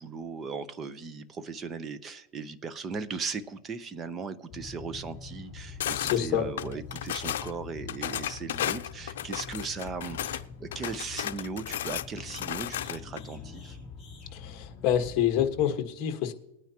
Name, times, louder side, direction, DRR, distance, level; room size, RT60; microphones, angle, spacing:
voice 1, 0.0-13.8, right 4 dB, 20° right, 12 dB, 0.7 m, -38 dB
sound 1, 4.5-15.7, left 5 dB, 10° left, 3.5 m, -45 dB
sound 2, 5.8-6.2 6.6-7.5 7.9-10.4 10.7-13.2, left 11 dB, 75° left, 0.6 m, -34 dB
voice 2, 5.9-6.5 14.3-16.3, left 10 dB, 35° left, 5 dB, 1.4 m, -27 dB
20.5 x 9.3 x 2.9 m, 0.87 s
supercardioid pair, 150°, 0 cm